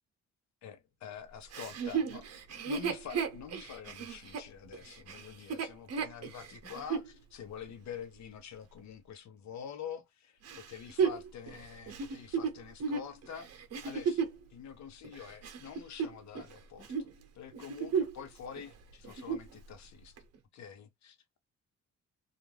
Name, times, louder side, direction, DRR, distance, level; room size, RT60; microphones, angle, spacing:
voice 1, 0.6-2.2 2.5-17.1 17.3-20.2 20.5-21.4, left 8 dB, 65° left, 0.9 m, -47 dB
Chuckle chortle, 1.5-7.1 7.7-7.8 10.5-14.4 15.0-16.5 16.8-17.1 17.5-18.3 18.6-18.7 19.0-19.5 20.2-20.3, right 6 dB, 55° right, 0.9 m, -34 dB
2.5 x 2.4 x 3.2 m
cardioid pair, 90°, 30 cm